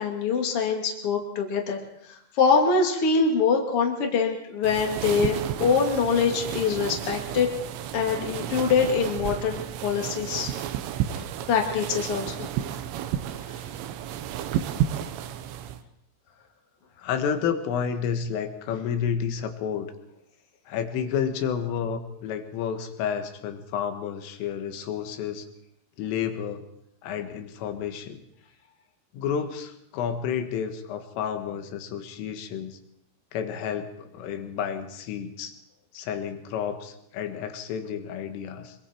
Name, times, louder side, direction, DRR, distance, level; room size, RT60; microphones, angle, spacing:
voice 1, 0.0-1.8 2.3-7.5 7.9-10.5 11.1-11.2 11.5-12.5, left 5 dB, 35° left, 1 dB, 2.5 m, -24 dB
sound 1, 4.6-15.8, right 10 dB, 75° right, 3.4 m, -32 dB
voice 2, 17.0-19.9 20.7-25.5 26.0-26.7 27.0-28.2 29.1-32.8 33.3-35.6 35.9-38.8, left 7 dB, 75° left, 7 dB, 4.1 m, -30 dB
25.5 x 23.5 x 4.6 m, 0.77 s
omnidirectional pair, 6.0 m